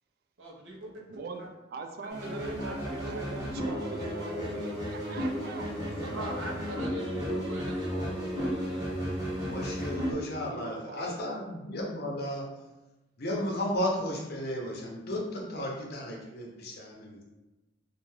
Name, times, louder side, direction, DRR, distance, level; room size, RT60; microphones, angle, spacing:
voice 1, 0.4-0.9 2.2-3.7 4.0-4.3 6.0-8.9, right 1 dB, 80° right, -3 dB, 0.7 m, -42 dB
voice 2, 1.1-1.4 1.7-6.4 10.4-11.2, right 4 dB, 55° right, 5 dB, 0.3 m, -42 dB
sound 1, 2.1-10.1, equal, 20° right, 1.0 m, -33 dB
voice 3, 9.4-12.5 13.2-17.2, left 1 dB, 55° left, -1 dB, 0.6 m, -34 dB
2.5 x 2.2 x 3.1 m, 1.0 s
head